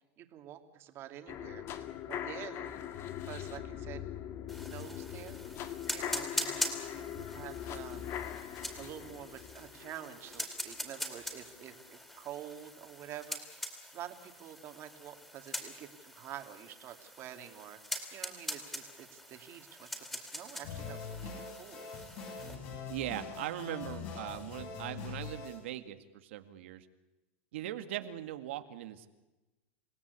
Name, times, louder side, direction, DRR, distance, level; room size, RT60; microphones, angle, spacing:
voice 1, 0.2-1.6 2.1-2.8 3.3-4.0 4.7-5.4 5.9-6.6 6.9-8.0 8.8-13.4 13.9-17.8 18.1-19.9 20.3-21.9, right 11 dB, 40° right, 6 dB, 2.7 m, -47 dB
sound 1, 1.3-11.3 11.7-11.8, left 10 dB, 40° left, 1.9 m, -42 dB
sound 2, 4.5-22.6, equal, 5° left, 4.3 m, -43 dB
sound 3, 20.6-25.7, left 5 dB, 55° left, 7.8 m, -43 dB
voice 2, 22.9-26.9 27.5-29.1, right 13 dB, 75° right, 8 dB, 2.1 m, -40 dB
29.0 x 17.0 x 8.4 m, 1.1 s
supercardioid pair, 135°, 6 cm